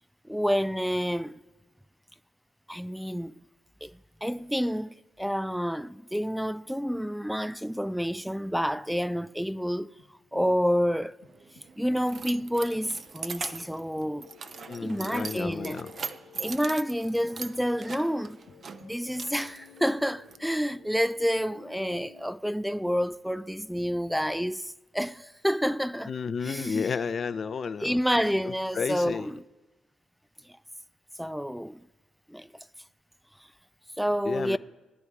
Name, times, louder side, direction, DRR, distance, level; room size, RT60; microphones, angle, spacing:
voice 1, 0.2-1.4 2.7-3.4 3.8-10.0 10.3-11.2 11.8-14.3 14.8-15.8 16.4-18.4 18.8-26.1 26.4-26.9 27.8-29.4 31.2-31.8 32.3-32.5 34.0-34.6, equal, ahead, 0.3 m, -29 dB
sound 1, 8.8-9.5 10.0-10.7 11.2-12.0 12.4-13.2 13.6-14.4 14.8-15.6 16.0-16.8 17.2-18.0 18.4-19.3, left 5 dB, 70° left, 1.5 m, -61 dB
Keys jangling, 11.3-20.4, right 5 dB, 45° right, 0.6 m, -41 dB
sound 2, 13.4-22.3, left 10 dB, 90° left, 0.8 m, -53 dB
voice 2, 14.7-15.9 26.1-28.0 28.4-29.3 34.2-34.6, left 6 dB, 45° left, 0.6 m, -32 dB
18.0 x 9.6 x 4.7 m
cardioid pair, 90°, 0 cm